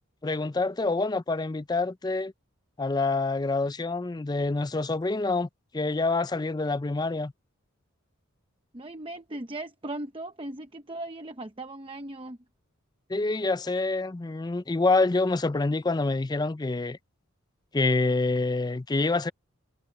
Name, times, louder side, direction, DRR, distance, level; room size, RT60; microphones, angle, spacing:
voice 1, 0.2-2.3 2.8-5.5 5.7-7.3 13.1-17.0 17.7-19.3, left 3 dB, 20° left, 0.4 m, -26 dB
voice 2, 8.7-12.4, right 2 dB, 25° right, 0.9 m, -38 dB
head